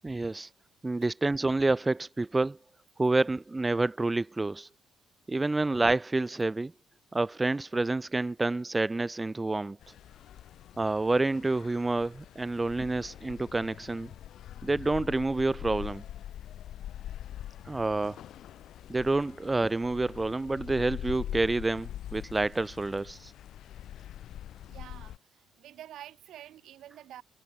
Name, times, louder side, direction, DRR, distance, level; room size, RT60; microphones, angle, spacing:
voice 1, 0.0-0.5 0.8-2.6 3.0-4.7 5.3-6.7 7.1-9.8 10.8-14.1 14.6-16.0 17.7-18.2 18.9-23.3, right 2 dB, 20° right, 0.7 m, -28 dB
sound 1, 9.8-25.2, left 11 dB, 75° left, 2.0 m, -43 dB
voice 2, 24.6-27.2, right 12 dB, 80° right, 5.4 m, -48 dB
cardioid pair, 90°, 0 cm